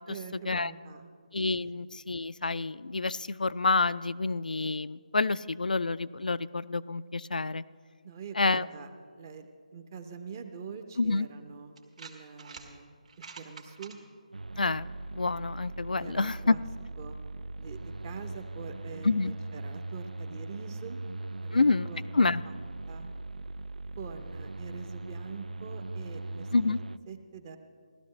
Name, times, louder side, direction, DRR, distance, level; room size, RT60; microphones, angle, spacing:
voice 1, 0.1-1.1 8.0-8.9 9.2-11.7 12.0-14.0 16.0-16.6 17.0-17.2 17.6-21.0 21.4-22.0 22.4-22.5 22.9-23.1 24.0-26.5 27.1-27.6, right 6 dB, 25° right, 7 dB, 0.7 m, -44 dB
voice 2, 1.3-7.6 8.4-8.7 11.0-11.3 14.6-16.6 19.0-19.3 21.5-21.9 22.1-22.4 26.5-26.8, left 3 dB, 85° left, 16 dB, 0.4 m, -28 dB
sound 1, 11.0-11.1 11.8-12.7 13.0-14.0, right 5 dB, 55° right, 1.6 m, -47 dB
sound 2, 14.3-27.0, right 2 dB, 85° right, 0.4 m, -40 dB
17.0 x 12.5 x 3.2 m, 2.1 s
figure-of-eight pair, 165°, 4 cm